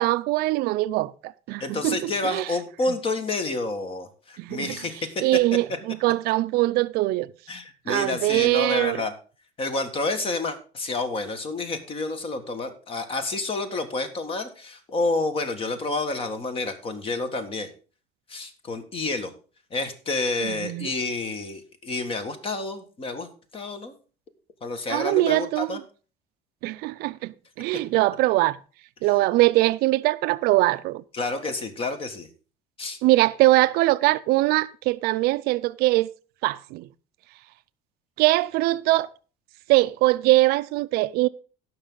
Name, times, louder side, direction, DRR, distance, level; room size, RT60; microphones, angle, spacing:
voice 1, 0.0-2.5 4.4-4.8 5.2-7.3 7.9-9.0 20.5-20.9 24.9-25.8 26.6-28.5 29.0-31.0 33.0-36.1 36.4-36.9 38.2-39.1 39.7-41.3, right 18 dB, 70° right, 0.5 m, -22 dB
voice 2, 1.6-5.2 5.5-5.8 7.5-9.1 9.6-17.7 18.3-19.3 19.7-23.9 24.6-25.8 31.1-32.3 32.8-33.0, left 3 dB, 35° left, 1.7 m, -29 dB
16.5 x 6.1 x 3.9 m
cardioid pair, 135°, 17 cm